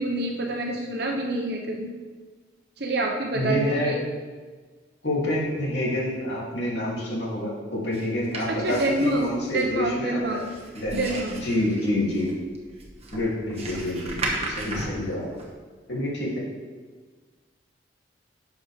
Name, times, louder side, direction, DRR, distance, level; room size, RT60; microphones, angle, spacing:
voice 1, 0.0-1.9 2.8-3.9 8.5-9.3 9.5-10.4 10.9-11.3, right 2 dB, 55° right, 1 dB, 0.9 m, -27 dB
voice 2, 3.3-3.9 5.0-10.4 10.7-12.3 13.1-15.3 15.9-16.4, left 1 dB, 65° left, -6 dB, 3.0 m, -27 dB
sound 1, 7.9-15.5, right 2 dB, 35° right, 1.3 m, -36 dB
11.5 x 7.0 x 3.6 m, 1.4 s
head